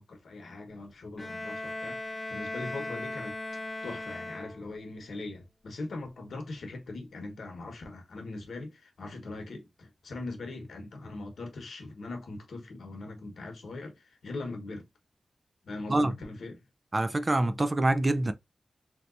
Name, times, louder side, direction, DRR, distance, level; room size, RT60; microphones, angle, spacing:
voice 1, 0.0-3.4 3.8-14.9 15.6-16.6, left 2 dB, 85° left, 1.0 m, -41 dB
Bowed string instrument, 1.2-4.9, left 2 dB, 30° left, 0.6 m, -38 dB
voice 2, 16.9-18.3, right 2 dB, 30° right, 0.4 m, -25 dB
3.3 x 2.8 x 2.4 m
wide cardioid pair, 85°, 0 cm